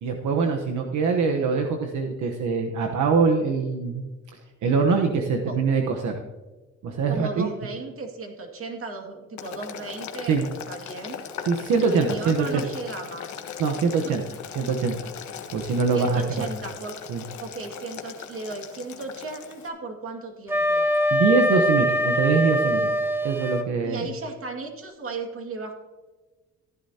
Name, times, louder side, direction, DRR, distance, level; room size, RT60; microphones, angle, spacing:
voice 1, 0.0-4.1 4.6-6.2 6.8-7.5 10.3-10.4 11.5-12.6 13.6-14.2 14.5-15.1 15.5-16.5 17.1-17.2 21.1-22.9 23.2-24.0, right 5 dB, 75° right, 3 dB, 1.1 m, -23 dB
voice 2, 7.1-11.2 11.8-13.3 14.0-14.1 15.9-16.9 17.4-20.9 23.8-25.7, right 3 dB, 45° right, 3 dB, 2.2 m, -35 dB
Boiling, 9.4-19.7, left 8 dB, 70° left, 1.3 m, -39 dB
Wind instrument woodwind instrument, 20.5-23.7, equal, 10° right, 1.1 m, -23 dB
15.0 x 10.5 x 2.8 m, 1.2 s
cardioid pair, 90°, 30 cm